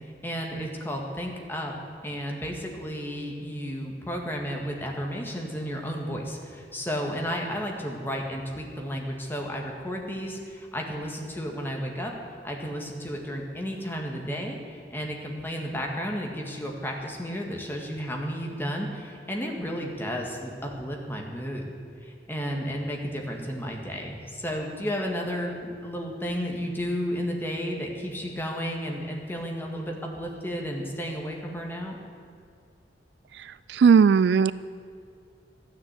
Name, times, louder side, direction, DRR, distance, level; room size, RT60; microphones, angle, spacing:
voice 1, 0.2-1.7 2.0-12.1 12.4-21.6 22.0-32.0, equal, 10° left, 0 dB, 1.8 m, -33 dB
voice 2, 33.7-34.5, right 6 dB, 70° right, 17 dB, 0.3 m, -17 dB
13.0 x 9.8 x 8.3 m, 2.3 s
head